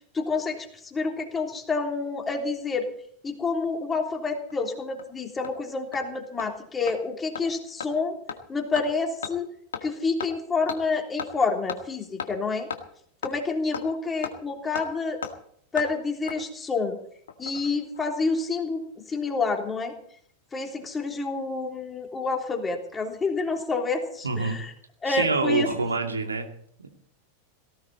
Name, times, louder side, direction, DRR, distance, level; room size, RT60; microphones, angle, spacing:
voice 1, 0.1-2.9 3.2-8.2 8.5-9.5 9.8-12.7 13.2-15.2 15.7-17.0 17.4-19.9 20.5-24.7 25.0-25.7, left 4 dB, 15° left, 2 dB, 3.3 m, -28 dB
Hammer, 4.5-4.6 5.0-5.1 5.4-5.5 5.9-6.0 6.4-6.5 6.9-7.0 7.4-7.5 7.8-7.9 8.3-8.4 8.8-8.9 9.2-9.3 9.7-9.9 10.2-10.3 10.7-10.8 11.2-11.3 11.7-11.8 12.2-12.3 12.7-12.8 13.2-13.3 13.7-13.9 14.2-14.3 14.8-14.9 15.2-15.3 15.8-15.9 16.3-16.4 17.3-17.7 17.9-18.0, left 7 dB, 65° left, 1.8 m, -34 dB
voice 2, 24.2-24.6 25.0-26.5, right 3 dB, 75° right, 4 dB, 2.5 m, -26 dB
18.5 x 16.5 x 4.2 m, 0.62 s
figure-of-eight pair, 90°, 0 cm